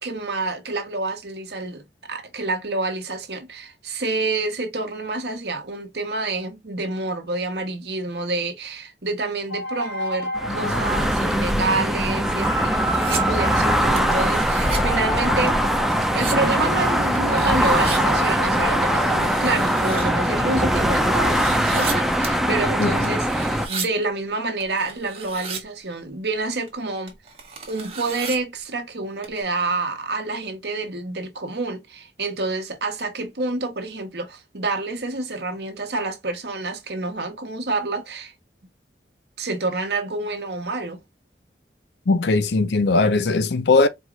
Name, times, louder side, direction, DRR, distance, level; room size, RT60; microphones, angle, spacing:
voice 1, 0.0-1.8 2.1-12.7 13.1-15.6 16.1-27.1 27.7-38.3 39.4-41.0, right 3 dB, 70° right, 1.1 m, -28 dB
sound 1, 9.5-22.2, equal, 90° left, 2.0 m, -33 dB
sound 2, 10.3-23.7, equal, ahead, 0.5 m, -21 dB
sound 3, 12.4-13.2 14.0-14.8 15.5-16.4 17.2-18.0 18.8-20.1 21.0-22.0 22.2-22.4 23.0-23.9 24.6-25.6 26.7-26.8 27.1-28.4 29.2-29.4, right 5 dB, 35° right, 1.3 m, -34 dB
voice 2, 22.8-23.1 42.1-43.9, left 3 dB, 70° left, 0.6 m, -19 dB
4.5 x 2.5 x 3.1 m
head